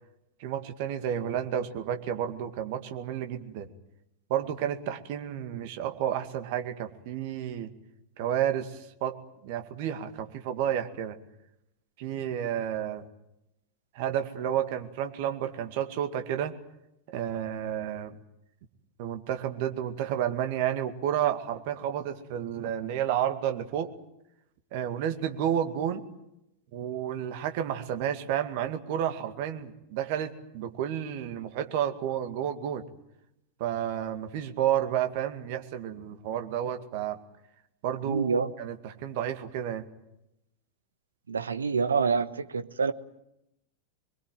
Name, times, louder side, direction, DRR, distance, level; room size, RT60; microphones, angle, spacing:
voice 1, 0.4-3.7 4.3-7.7 8.2-9.2 9.4-11.2 12.0-13.1 13.9-16.5 17.1-18.2 19.0-23.9 24.7-26.0 26.7-32.8 33.6-37.2 37.8-39.8, right 10 dB, 50° right, 7 dB, 2.2 m, -31 dB
voice 2, 38.0-38.5 41.3-42.9, right 5 dB, 70° right, 12 dB, 1.1 m, -27 dB
24.0 x 22.5 x 9.2 m, 0.85 s
figure-of-eight pair, 90°, 0 cm